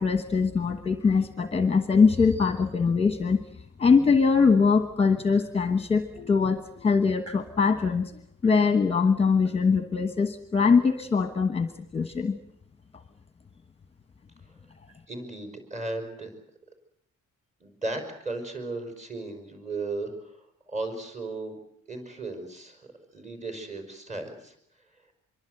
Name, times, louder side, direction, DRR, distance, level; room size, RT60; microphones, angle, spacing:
voice 1, 0.0-3.4 3.8-8.1 8.4-12.4, left 5 dB, 20° left, 8 dB, 1.3 m, -22 dB
voice 2, 15.1-16.3 17.6-21.6 21.9-24.6, right 2 dB, 20° right, 6 dB, 5.4 m, -36 dB
25.5 x 23.0 x 8.0 m, 0.70 s
wide cardioid pair, 180°, 31 cm